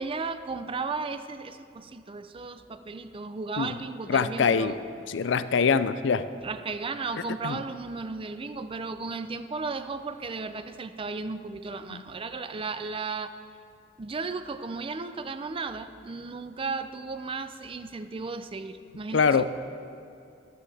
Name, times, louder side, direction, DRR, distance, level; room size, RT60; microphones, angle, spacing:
voice 1, 0.0-4.8 6.4-13.4 14.0-19.4, right 4 dB, 30° right, 10 dB, 0.5 m, -35 dB
voice 2, 4.1-4.7 5.1-6.2 7.4-7.6 11.9-12.0 19.1-19.4, left 6 dB, 70° left, 13 dB, 0.4 m, -24 dB
15.0 x 11.5 x 3.5 m, 2.6 s
head